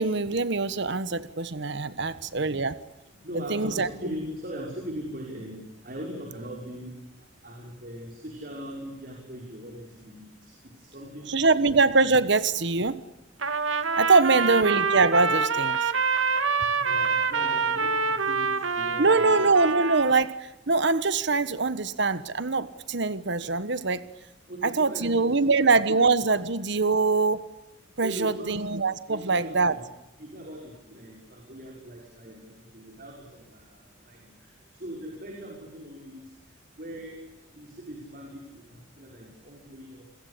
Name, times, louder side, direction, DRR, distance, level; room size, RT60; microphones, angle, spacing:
voice 1, 0.0-2.8 3.5-3.9 11.3-13.0 14.0-15.9 19.0-24.0 24.6-27.5 28.0-29.8, right 3 dB, 60° right, 14 dB, 1.3 m, -23 dB
voice 2, 3.2-7.0 7.4-10.5 10.8-11.7 14.2-14.6 16.6-18.0 18.3-19.4 24.5-26.0 28.0-28.6 29.1-29.8 30.2-33.8 34.1-34.2 34.7-36.2 36.8-37.2 37.6-40.0, right 1 dB, 45° right, 0 dB, 6.0 m, -40 dB
Trumpet, 13.4-20.2, right 4 dB, 85° right, 2.2 m, -26 dB
29.0 x 22.5 x 8.6 m, 0.95 s
head